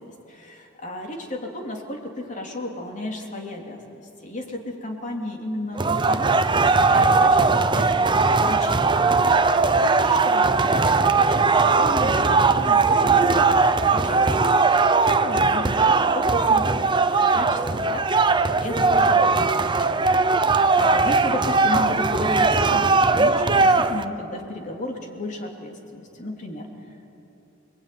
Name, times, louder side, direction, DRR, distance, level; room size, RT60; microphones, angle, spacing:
voice 1, 0.3-9.0 9.7-10.5 10.8-16.7 16.9-20.0 20.2-20.4 20.8-26.7, left 1 dB, 35° left, 1 dB, 3.3 m, -34 dB
sound 1, 5.8-24.0, right 4 dB, 20° right, 0.7 m, -19 dB
29.0 x 21.5 x 9.5 m, 3.0 s
head